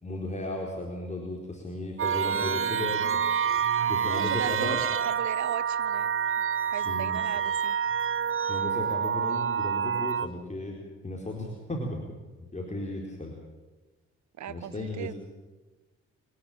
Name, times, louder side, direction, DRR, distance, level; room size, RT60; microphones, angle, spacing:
voice 1, 0.0-3.2 3.9-4.8 6.7-7.2 8.5-10.8 11.0-12.2 12.5-13.3 14.5-15.1, left 1 dB, 20° left, -1 dB, 4.3 m, -35 dB
sound 1, 2.0-10.3, right 7 dB, 40° right, 1.0 m, -28 dB
voice 2, 2.3-3.1 4.1-6.1 6.7-7.8 14.4-15.1, right 10 dB, 60° right, 17 dB, 1.2 m, -37 dB
27.0 x 11.5 x 9.0 m, 1.2 s
hypercardioid pair, 45°, 33 cm